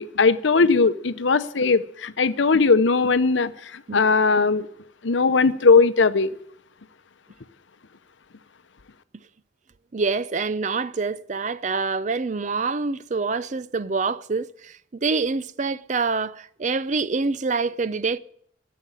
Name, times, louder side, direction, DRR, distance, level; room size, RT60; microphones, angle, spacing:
voice 1, 0.0-4.7 5.0-6.3, left 4 dB, 80° left, 0.8 m, -19 dB
voice 2, 9.9-18.2, right 4 dB, 40° right, 0.5 m, -26 dB
13.5 x 7.7 x 9.9 m
head